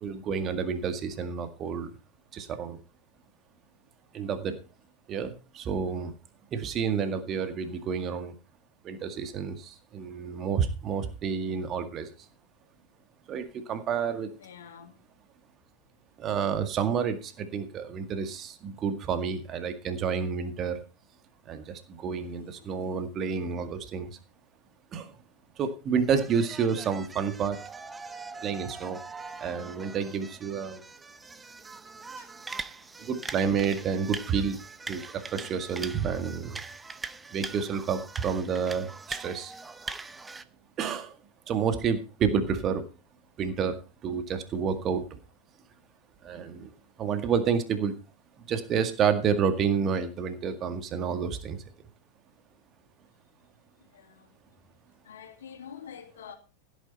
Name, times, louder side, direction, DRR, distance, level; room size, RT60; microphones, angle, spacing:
voice 1, 0.0-1.9 2.3-2.8 4.1-4.6 5.1-6.1 6.5-8.4 8.8-12.1 13.3-14.3 16.2-20.8 21.5-24.1 24.9-25.1 25.6-27.6 28.4-29.0 29.4-30.8 33.0-34.6 34.9-36.6 37.3-39.5 40.8-41.1 41.5-42.8 43.4-45.2 46.2-46.7 47.0-47.9 48.5-51.6, right 6 dB, 30° right, 1.9 m, -29 dB
voice 2, 14.4-14.9 22.2-22.8 32.2-32.3 53.9-54.3 55.0-56.3, left 8 dB, 65° left, 2.6 m, -47 dB
sound 1, 26.0-40.4, right 3 dB, 10° right, 0.8 m, -42 dB
16.0 x 9.2 x 4.2 m
figure-of-eight pair, 90°, 0 cm